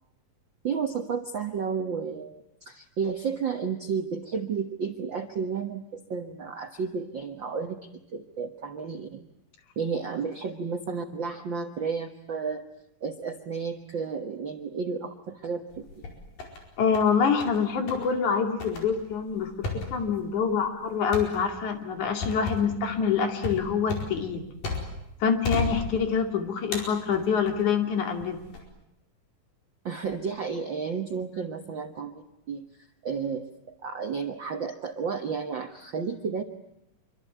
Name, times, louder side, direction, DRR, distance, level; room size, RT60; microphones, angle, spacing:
voice 1, 0.6-7.8 8.1-9.2 9.8-12.6 13.0-16.0 29.8-32.6 33.0-36.4, right 5 dB, 55° right, 5 dB, 1.3 m, -32 dB
sound 1, 15.7-16.6 16.9-17.6 17.9-18.1 18.6-25.1 25.4-26.3 26.7-27.7 28.2-28.6, left 4 dB, 80° left, 6.5 m, -34 dB
voice 2, 16.8-24.4 25.2-28.4, left 6 dB, 60° left, 5 dB, 3.9 m, -26 dB
26.5 x 24.5 x 9.3 m, 0.82 s
omnidirectional pair, 3.9 m